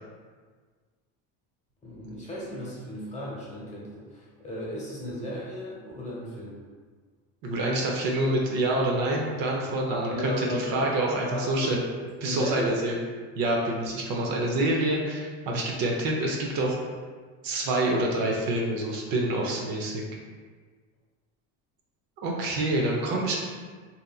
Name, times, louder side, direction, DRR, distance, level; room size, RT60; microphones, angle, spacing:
voice 1, 1.8-6.6 9.9-10.9 11.3-11.7 12.0-12.8 22.9-23.4, equal, 20° left, -6 dB, 0.9 m, -35 dB
voice 2, 7.4-11.8 12.2-13.0 13.4-16.8 17.4-20.0 22.2-23.4, right 1 dB, 65° right, -1 dB, 0.7 m, -27 dB
2.8 x 2.5 x 2.3 m, 1.5 s
supercardioid pair, 100°, 38 cm